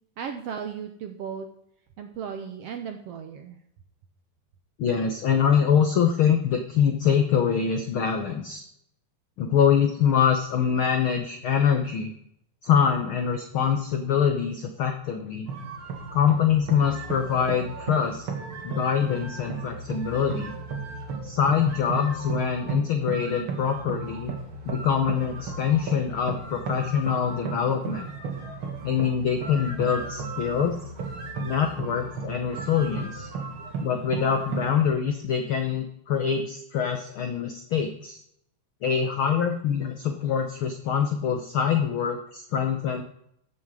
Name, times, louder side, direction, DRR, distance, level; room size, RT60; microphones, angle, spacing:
voice 1, 0.2-1.5 2.0-3.6, right 7 dB, 75° right, 6 dB, 1.4 m, -35 dB
voice 2, 4.8-8.6 9.4-12.1 12.6-15.5 16.1-18.3 18.6-20.5 21.2-24.3 24.6-28.1 28.8-30.8 31.4-33.3 33.8-38.1 38.8-43.0, left 7 dB, 90° left, 6 dB, 1.1 m, -24 dB
sound 1, 15.5-34.9, right 4 dB, 45° right, 2.3 m, -35 dB
14.0 x 7.4 x 4.8 m, 0.72 s
omnidirectional pair, 3.7 m